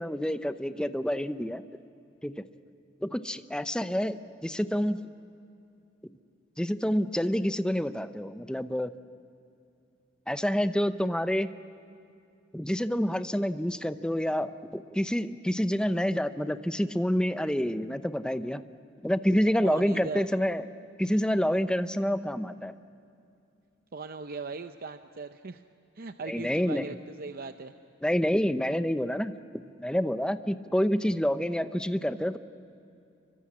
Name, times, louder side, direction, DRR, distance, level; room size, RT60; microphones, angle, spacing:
voice 1, 0.0-1.6 2.2-2.4 3.0-5.1 6.6-8.9 10.3-11.5 12.5-18.6 19.0-20.6 21.0-22.7 26.3-26.9 28.0-32.4, equal, 5° left, 11 dB, 0.7 m, -28 dB
voice 2, 19.6-20.2 23.9-25.6 26.0-27.7, right 4 dB, 50° right, 8 dB, 0.7 m, -39 dB
28.5 x 24.0 x 8.6 m, 2.6 s
head